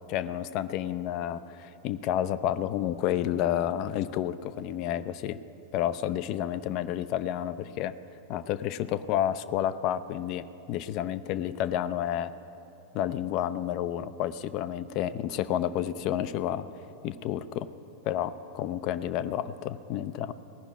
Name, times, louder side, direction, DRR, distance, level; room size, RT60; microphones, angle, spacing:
voice 1, 0.1-5.4 5.7-7.9 8.3-12.3 12.9-16.7 17.0-17.7 18.0-20.3, left 11 dB, 40° left, 14 dB, 0.4 m, -30 dB
17.5 x 6.1 x 9.0 m, 2.9 s
figure-of-eight pair, 90°, 0 cm